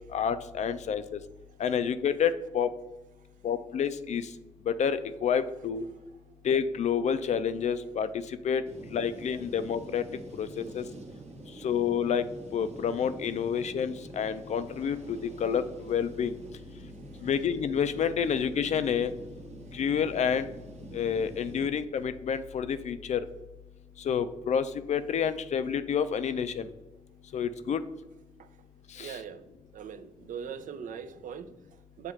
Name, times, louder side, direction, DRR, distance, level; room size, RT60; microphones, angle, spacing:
voice 1, 0.1-1.2 1.6-2.7 3.4-4.2 4.7-5.8 6.4-8.1 8.4-8.6 8.9-10.0 10.4-10.8 11.6-12.2 12.5-16.3 17.2-19.1 19.7-20.5 20.9-23.2 24.1-26.6 27.3-27.8 29.0-29.2, left 7 dB, 55° left, 12 dB, 0.4 m, -29 dB
sound 1, 8.7-21.7, right 2 dB, 50° right, 0.8 m, -46 dB
voice 2, 29.0-29.4 29.7-32.1, right 7 dB, 70° right, 11 dB, 0.4 m, -41 dB
7.0 x 2.4 x 3.0 m, 1.0 s
cardioid pair, 60°, 14 cm